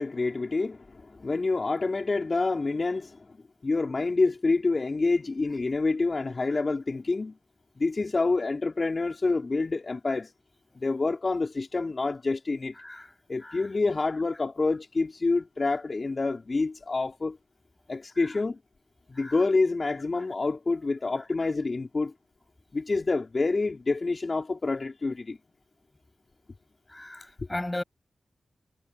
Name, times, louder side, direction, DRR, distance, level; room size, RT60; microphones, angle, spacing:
voice 1, 0.0-3.3 3.6-7.3 7.8-10.3 10.8-12.7 13.3-17.4 17.9-18.6 19.1-22.1 22.7-25.4, left 3 dB, 50° left, 4.0 m, -27 dB
voice 2, 26.9-27.8, left 1 dB, 20° left, 7.6 m, -36 dB
cardioid pair, 45°, 0 cm